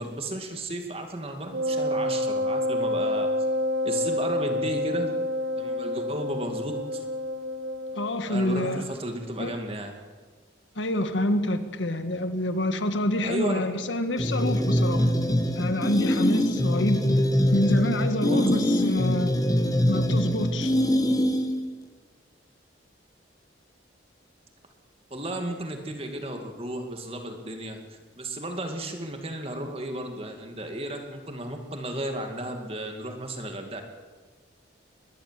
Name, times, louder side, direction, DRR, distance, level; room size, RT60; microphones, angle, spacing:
voice 1, 0.0-3.3 3.8-5.1 5.5-7.0 8.3-9.9 13.2-13.6 18.3-18.5 25.1-33.8, right 1 dB, 30° right, 5 dB, 2.3 m, -34 dB
Wind instrument woodwind instrument, 1.5-8.2, left 1 dB, 85° right, 2.8 m, -28 dB
voice 2, 7.9-8.8 9.4-9.6 10.8-15.1 15.6-17.0 17.5-19.3 19.9-20.8, left 1 dB, 80° left, 9 dB, 1.7 m, -27 dB
sound 1, 14.2-21.7, equal, 20° left, 1.4 m, -24 dB
22.5 x 20.5 x 7.7 m, 1.5 s
head